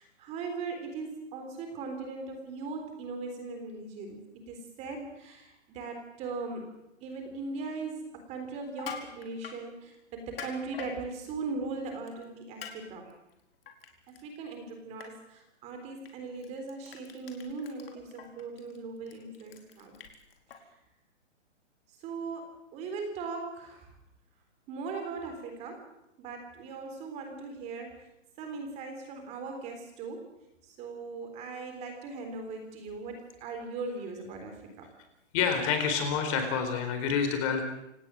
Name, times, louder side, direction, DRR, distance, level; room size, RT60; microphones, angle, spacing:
voice 1, 0.0-4.2 4.5-6.7 7.0-13.1 14.1-20.0 21.9-23.9 24.7-25.9 26.2-28.1 28.4-30.3 30.6-34.9, right 4 dB, 20° right, 5 dB, 3.6 m, -39 dB
Crushing, 8.7-9.6 10.2-10.9 12.1-12.2 12.6-12.7 13.1-14.2 14.5-14.7 15.0-15.1 16.0-16.1 16.4-20.6, left 7 dB, 50° left, 4.8 m, -43 dB
voice 2, 35.3-37.7, left 6 dB, 25° left, 6 dB, 4.2 m, -28 dB
28.5 x 18.5 x 7.6 m, 0.86 s
hypercardioid pair, 165°, 37 cm